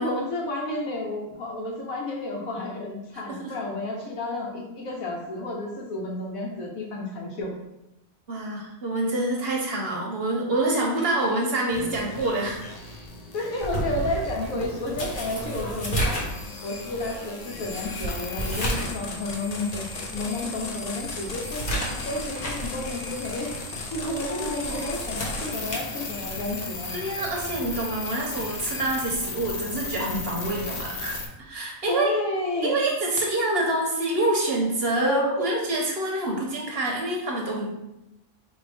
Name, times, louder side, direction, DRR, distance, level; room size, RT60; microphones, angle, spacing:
voice 1, 0.0-7.5 10.9-11.1 13.3-16.2 16.6-19.8 20.1-23.5 23.9-26.9 31.9-32.8 35.0-35.4, left 1 dB, 85° left, -1 dB, 1.4 m, -31 dB
voice 2, 8.3-12.6 24.2-24.8 26.9-32.1 32.6-37.7, right 2 dB, 55° right, -1 dB, 0.9 m, -27 dB
sound 1, 11.7-31.3, left 3 dB, 65° left, 0.4 m, -36 dB
sound 2, 13.6-19.0 19.3-19.4 20.0-20.1 20.5-22.8 23.1-23.4 24.6-26.6 27.7-27.9, right 1 dB, 40° left, 1.1 m, -32 dB
4.7 x 2.6 x 3.4 m, 0.89 s
omnidirectional pair, 1.4 m